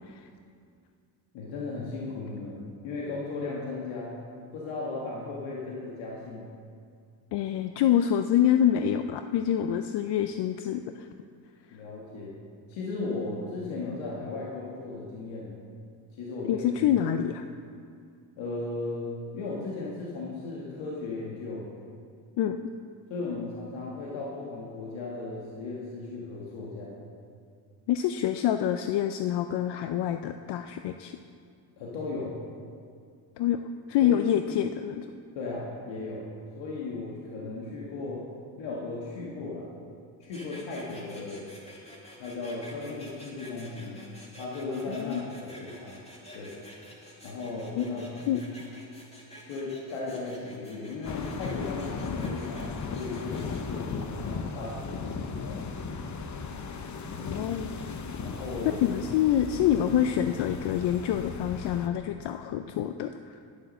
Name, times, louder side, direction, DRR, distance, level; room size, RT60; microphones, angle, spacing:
voice 1, 1.3-2.6 2.8-4.1 4.5-6.5 11.7-12.3 12.7-15.5 16.1-16.6 18.4-21.7 23.1-27.0 31.8-32.3 34.0-34.3 35.3-36.3 36.6-38.2 38.6-39.7 40.2-41.4 42.2-44.0 44.4-46.0 46.3-46.5 47.2-48.4 49.5-55.8 57.1-57.3 58.2-59.0, left 3 dB, 85° left, -4 dB, 1.6 m, -36 dB
voice 2, 7.3-11.1 16.5-17.4 22.4-22.6 27.9-31.2 33.4-33.6 33.9-35.1 44.9-45.2 47.8-48.4 57.2-57.9 58.8-63.4, left 10 dB, 65° left, 8 dB, 0.5 m, -26 dB
sound 1, 40.2-53.7, equal, 15° left, 2.1 m, -49 dB
sound 2, 51.0-61.9, left 5 dB, 40° left, 0.8 m, -36 dB
10.5 x 5.9 x 6.5 m, 2.2 s
cardioid pair, 90°, 45 cm